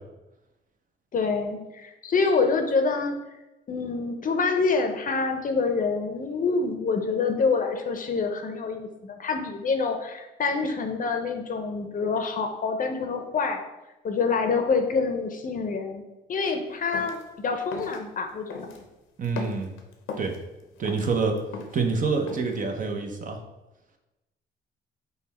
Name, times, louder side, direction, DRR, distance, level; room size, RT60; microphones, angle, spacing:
voice 1, 1.1-3.1 3.7-13.7 14.0-16.0 16.3-17.2 17.4-18.7, left 4 dB, 45° left, 5 dB, 0.6 m, -26 dB
sound 1, 16.9-17.2 17.7-18.0 18.5-18.9 19.2-20.4 20.8-21.8 22.3-22.6, left 4 dB, 90° left, 0.7 m, -37 dB
voice 2, 19.2-19.7 20.2-20.3 20.8-21.4 21.7-23.4, right 4 dB, 40° right, 3 dB, 0.8 m, -26 dB
5.4 x 2.3 x 4.1 m, 1.0 s
cardioid pair, 90°, 20 cm